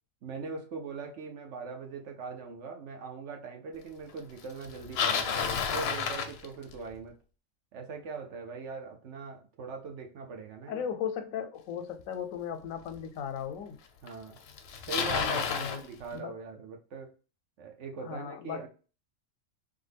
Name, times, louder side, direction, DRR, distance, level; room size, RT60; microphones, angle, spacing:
voice 1, 0.2-5.4 5.7-7.2 7.7-10.8 14.0-14.4 14.9-17.1 17.6-18.7, right 5 dB, 65° right, 1.0 m, -41 dB
Bicycle, 4.6-7.0 12.0-12.1 12.9-13.0 14.1-14.2 14.4-15.8, left 6 dB, 65° left, 0.7 m, -30 dB
voice 2, 10.7-13.8 15.0-15.8 16.1-16.4 18.0-18.7, left 8 dB, 90° left, 1.0 m, -37 dB
3.5 x 2.2 x 3.3 m
omnidirectional pair, 1.4 m